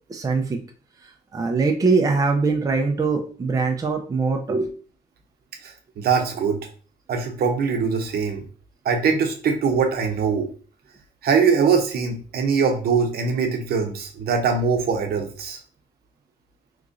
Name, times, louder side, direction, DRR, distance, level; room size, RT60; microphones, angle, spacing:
voice 1, 0.1-0.6 1.3-4.7, right 4 dB, 20° right, 3 dB, 0.5 m, -22 dB
voice 2, 5.6-6.7 7.1-8.4 8.8-10.5 11.2-15.6, right 5 dB, 65° right, 4 dB, 0.7 m, -22 dB
3.0 x 2.5 x 3.7 m, 0.41 s
cardioid pair, 115°, 17 cm